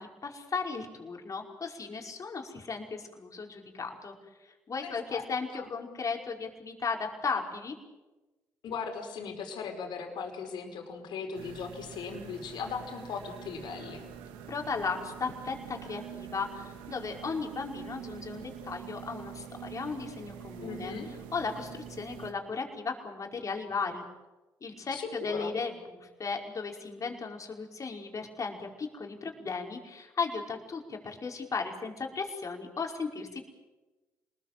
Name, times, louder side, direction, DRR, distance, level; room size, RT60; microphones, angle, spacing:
voice 1, 0.0-4.2 4.4-7.8 14.5-20.9 21.3-24.1 24.6-33.4, left 4 dB, 40° left, 2 dB, 5.3 m, -36 dB
voice 2, 4.8-5.2 5.5-5.7 8.6-14.0 20.6-21.1 24.9-25.5, left 5 dB, 65° left, 4 dB, 5.1 m, -38 dB
sound 1, 11.3-22.3, right 9 dB, 80° right, 2.1 m, -45 dB
27.5 x 20.5 x 7.6 m, 1.2 s
hypercardioid pair, 50°, 8 cm